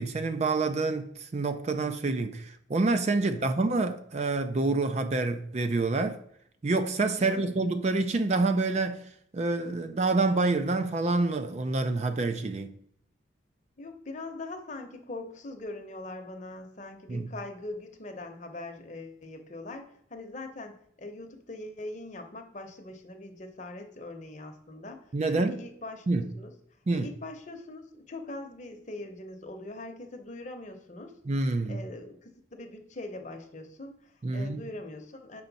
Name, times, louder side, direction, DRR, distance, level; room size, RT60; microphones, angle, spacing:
voice 1, 0.0-6.2 6.6-9.0 9.3-12.7 17.1-17.3 25.1-25.6 26.1-26.3 26.9-27.1 31.3-31.8 34.2-34.6, right 3 dB, 35° right, 0.4 m, -27 dB
voice 2, 7.2-7.5 13.8-19.8 20.1-26.5 26.9-31.2 31.7-35.4, left 2 dB, 40° left, 0.8 m, -42 dB
6.9 x 5.2 x 4.0 m
head